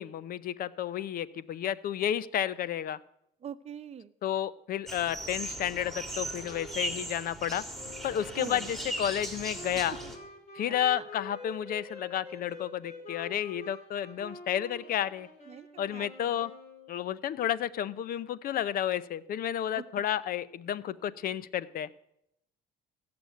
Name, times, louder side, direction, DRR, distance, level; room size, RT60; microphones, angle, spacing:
voice 1, 0.0-3.0 4.2-7.6 8.0-10.0 10.5-15.3 15.8-16.5 16.9-21.9, left 10 dB, 60° left, 18 dB, 0.7 m, -31 dB
voice 2, 3.4-4.1 8.3-8.7 9.9-10.0 10.9-11.1 15.5-16.4 19.7-19.8, right 8 dB, 40° right, 12 dB, 0.9 m, -43 dB
sound 1, 4.9-10.2, right 1 dB, ahead, 2.9 m, -38 dB
Wind instrument woodwind instrument, 7.7-17.2, left 3 dB, 40° left, 6.0 m, -47 dB
16.0 x 6.9 x 9.2 m, 0.78 s
cardioid pair, 110°, 17 cm